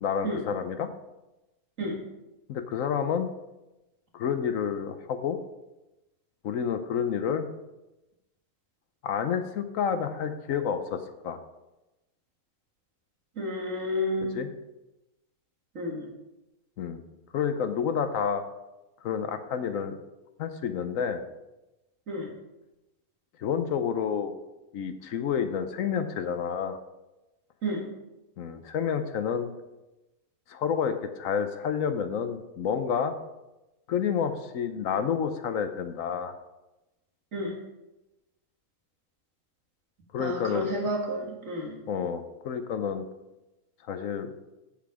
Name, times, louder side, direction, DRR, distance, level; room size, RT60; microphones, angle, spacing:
voice 1, 0.0-0.9 2.5-3.3 4.1-5.4 6.4-7.5 9.0-11.0 11.2-11.4 14.3-14.5 16.8-17.0 17.3-18.4 19.0-20.0 20.4-21.2 23.4-24.4 24.7-26.8 28.4-29.5 30.5-33.1 33.9-36.3 40.1-40.7 41.9-43.0 43.9-44.3, left 7 dB, 70° left, 9 dB, 1.1 m, -29 dB
voice 2, 13.4-14.3 15.7-16.1 22.1-22.3 27.6-27.8 37.3-37.6 40.2-41.8, equal, 60° right, -1 dB, 2.3 m, -31 dB
7.7 x 7.1 x 4.9 m, 0.98 s
omnidirectional pair, 1.5 m